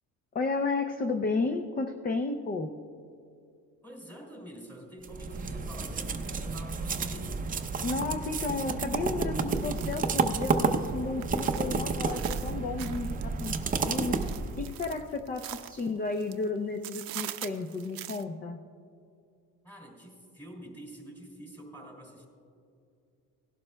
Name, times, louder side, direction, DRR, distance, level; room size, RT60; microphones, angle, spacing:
voice 1, 0.3-2.7 7.8-13.6 13.8-14.2 14.6-18.6, left 3 dB, 25° left, 6 dB, 0.4 m, -32 dB
voice 2, 3.8-7.4 19.6-22.3, equal, 5° left, -1 dB, 2.5 m, -46 dB
sound 1, 5.0-14.8, right 4 dB, 25° right, 0.5 m, -31 dB
sound 2, 9.5-16.5 16.8-18.2, right 13 dB, 75° right, 0.6 m, -44 dB
18.0 x 11.5 x 2.2 m, 2.4 s
cardioid pair, 135°, 35 cm